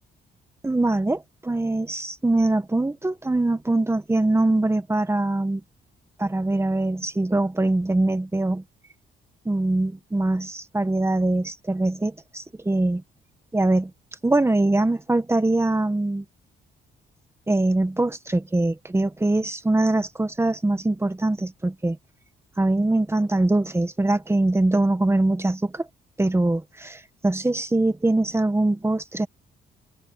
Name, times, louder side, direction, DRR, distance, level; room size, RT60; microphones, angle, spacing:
voice 1, 0.6-5.6 6.2-8.6 9.4-13.0 13.5-13.9 14.2-16.2 17.5-22.0 22.6-25.9 26.2-29.3, right 2 dB, 15° right, 1.6 m, -23 dB
cardioid pair, 90°, 20 cm